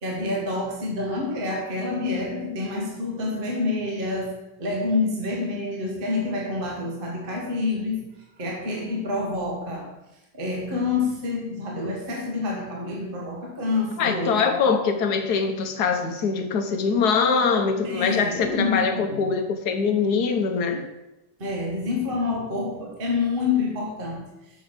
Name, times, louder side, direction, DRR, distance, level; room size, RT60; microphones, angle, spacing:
voice 1, 0.0-9.9 10.3-14.6 17.8-19.3 21.4-24.3, left 3 dB, 30° right, -1 dB, 1.4 m, -28 dB
voice 2, 14.0-20.8, left 5 dB, 65° left, 5 dB, 1.4 m, -23 dB
6.8 x 6.0 x 5.2 m, 0.95 s
omnidirectional pair, 1.9 m